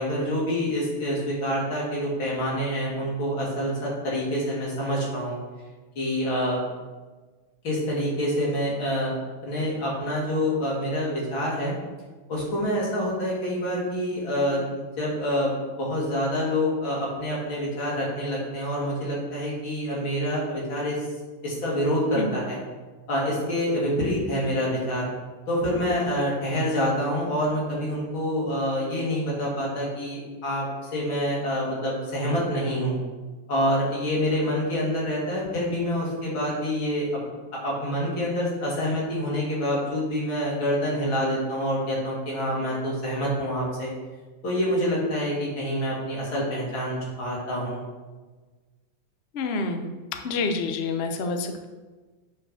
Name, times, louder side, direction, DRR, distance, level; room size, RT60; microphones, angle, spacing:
voice 1, 0.0-5.4 6.0-6.6 7.6-9.1 9.4-11.7 12.3-21.0 21.4-22.6 23.1-25.0 25.5-30.6 30.9-33.0 33.5-37.1 37.6-43.9 44.4-47.8, equal, 65° left, -5 dB, 3.7 m, -27 dB
voice 2, 49.3-49.9 50.2-51.6, left 3 dB, 80° left, 5 dB, 0.5 m, -28 dB
8.2 x 5.9 x 6.3 m, 1.3 s
omnidirectional pair, 2.4 m